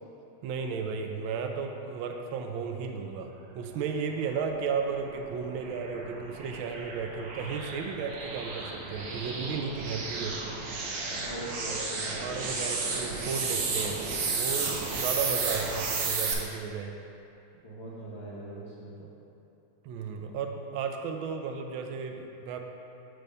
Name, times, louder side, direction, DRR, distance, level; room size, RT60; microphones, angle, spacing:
voice 1, 0.4-10.4 12.1-16.9 19.8-22.6, right 5 dB, 80° right, 4 dB, 1.3 m, -34 dB
sound 1, 4.8-16.3, right 4 dB, 65° right, 0.8 m, -33 dB
voice 2, 11.1-12.4 12.7-12.9 14.5-14.6 17.6-19.1, right 1 dB, 50° left, -9 dB, 0.8 m, -41 dB
7.6 x 3.4 x 5.2 m, 2.7 s
omnidirectional pair, 2.2 m